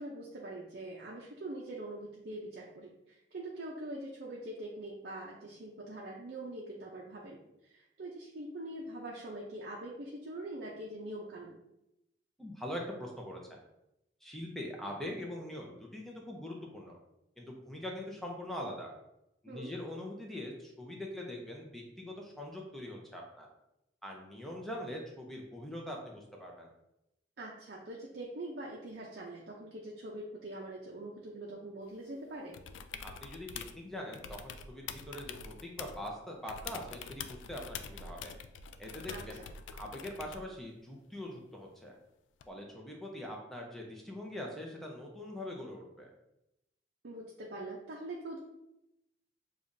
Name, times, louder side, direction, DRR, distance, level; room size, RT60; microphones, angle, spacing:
voice 1, 0.0-7.4 7.7-11.6 19.5-19.7 27.4-32.6 39.1-39.5 47.0-48.4, right 1 dB, 55° right, -3 dB, 0.6 m, -43 dB
voice 2, 12.4-13.6 14.2-17.0 17.4-18.9 19.4-23.5 24.0-26.7 33.0-38.3 38.8-39.4 39.7-42.0 42.5-46.1, left 1 dB, ahead, -1 dB, 0.6 m, -43 dB
sound 1, 32.5-33.8 34.1-36.1 36.5-40.5 42.4-42.5, left 6 dB, 80° left, 0.3 m, -45 dB
6.9 x 2.4 x 2.6 m, 0.86 s
head